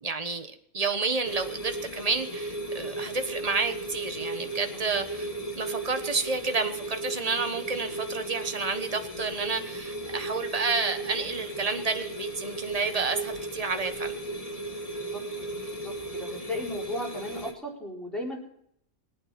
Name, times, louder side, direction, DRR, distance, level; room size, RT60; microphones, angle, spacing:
voice 1, 0.0-5.3 5.5-14.1, right 4 dB, 30° right, 7 dB, 1.2 m, -30 dB
sound 1, 1.2-17.5, right 2 dB, 25° left, 1.8 m, -36 dB
voice 2, 4.7-5.0 14.9-15.2 15.7-18.4, left 1 dB, ahead, -3 dB, 4.5 m, -36 dB
22.5 x 8.8 x 4.3 m, 0.70 s
omnidirectional pair, 1.4 m